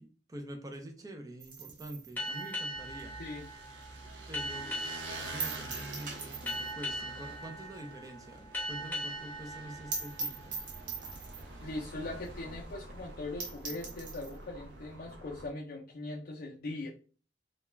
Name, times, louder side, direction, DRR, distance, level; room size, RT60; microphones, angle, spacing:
voice 1, 0.0-3.2 4.3-4.8 5.2-10.7, right 1 dB, 20° right, 5 dB, 0.4 m, -46 dB
sound 1, 1.4-4.0 4.4-4.5 4.8-4.9 5.4-6.8 7.1-7.2 7.5-7.6 8.0-8.1 8.3-8.4 8.7-8.8 9.1-9.2 9.5-9.6 9.9-11.6 12.2-12.3 12.7-12.8 13.1-13.2 13.4-14.4, right 4 dB, 50° right, 0.8 m, -41 dB
sound 2, 2.2-11.3, equal, 10° left, 0.8 m, -41 dB
sound 3, 2.7-15.5, right 2 dB, 80° right, 0.5 m, -47 dB
voice 2, 11.6-16.9, left 2 dB, 55° left, -3 dB, 0.4 m, -40 dB
2.3 x 2.1 x 3.0 m, 0.38 s
head